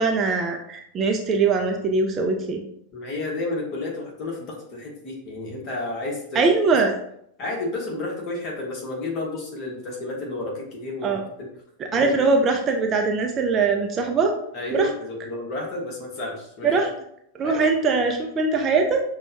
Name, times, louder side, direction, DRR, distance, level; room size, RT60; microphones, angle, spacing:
voice 1, 0.0-2.6 6.3-6.9 11.0-11.2 11.9-14.3 14.7-14.9 16.6-16.9 17.3-19.0, right 4 dB, 25° right, 3 dB, 0.4 m, -21 dB
voice 2, 2.9-6.4 7.4-11.2 11.9-12.1 14.5-16.8 17.4-17.6, left 2 dB, 35° left, -2 dB, 1.3 m, -31 dB
6.0 x 2.3 x 2.8 m, 0.73 s
figure-of-eight pair, 90°, 0 cm